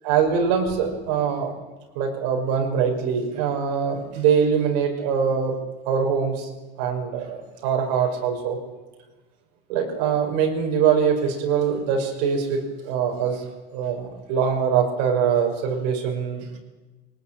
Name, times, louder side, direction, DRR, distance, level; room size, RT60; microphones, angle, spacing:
voice 1, 0.0-1.5 2.0-5.6 5.9-6.5 6.8-8.6 9.7-13.5 13.7-16.6, right 7 dB, 75° right, 2 dB, 5.5 m, -23 dB
21.5 x 19.0 x 9.0 m, 1.2 s
cardioid pair, 180°, 21 cm